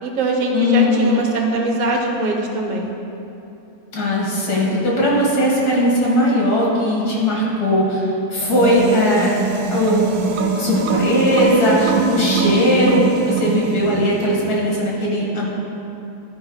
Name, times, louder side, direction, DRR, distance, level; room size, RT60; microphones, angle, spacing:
voice 1, 0.0-2.9, right 2 dB, 45° right, 1 dB, 0.9 m, -22 dB
voice 2, 0.5-1.2 3.9-9.3 9.7-10.2 10.6-15.5, left 1 dB, 80° left, -4 dB, 2.4 m, -18 dB
sound 1, 8.4-14.7, right 5 dB, 80° right, 1.1 m, -22 dB
11.5 x 5.3 x 3.9 m, 2.8 s
omnidirectional pair, 1.6 m